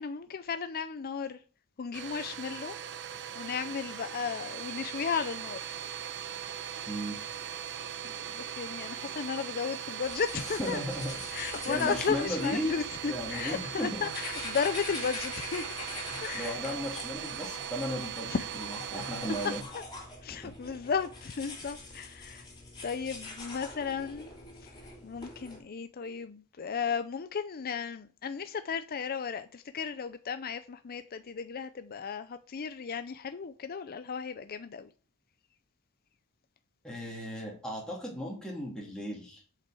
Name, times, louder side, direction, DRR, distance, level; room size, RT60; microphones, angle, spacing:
voice 1, 0.0-1.4 1.8-2.8 3.4-5.6 8.0-10.8 11.3-15.8 16.2-16.6 18.3-18.5 18.8-18.9 19.7-19.8 20.2-22.5 22.8-24.3 24.6-24.7 25.0-34.9, left 6 dB, 45° left, 0.5 m, -34 dB
Domestic sounds home sounds, 1.9-19.6, right 9 dB, 55° right, 0.8 m, -39 dB
voice 2, 6.9-7.2 9.0-9.1 10.3-14.1 16.1-19.6 20.4-20.5 36.8-39.4, equal, 5° left, 2.6 m, -36 dB
sound 1, 10.0-25.6, left 2 dB, 20° left, 3.3 m, -44 dB
7.8 x 5.8 x 7.6 m
head